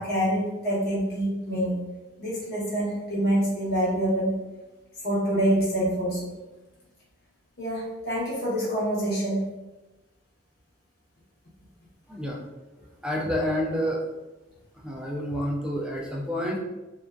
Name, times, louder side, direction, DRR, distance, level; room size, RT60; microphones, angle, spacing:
voice 1, 0.0-1.8 2.2-4.4 5.0-6.3 7.6-9.5, right 1 dB, 55° left, -7 dB, 1.0 m, -26 dB
voice 2, 12.1-12.4 13.0-14.0 14.8-16.6, equal, 5° right, -2 dB, 0.3 m, -28 dB
2.5 x 2.2 x 2.3 m, 1.1 s
head